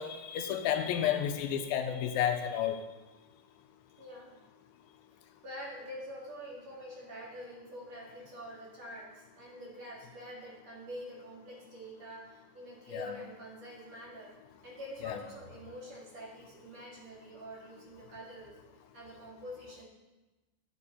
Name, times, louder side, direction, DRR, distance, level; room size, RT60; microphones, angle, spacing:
voice 1, 0.0-2.8 12.9-13.1 15.0-15.1, left 9 dB, 85° left, 7 dB, 2.6 m, -31 dB
voice 2, 4.0-4.4 5.4-14.3 14.6-18.6 18.9-19.9, equal, 50° right, -5 dB, 3.4 m, -46 dB
12.5 x 8.1 x 4.3 m, 1.1 s
omnidirectional pair, 4.1 m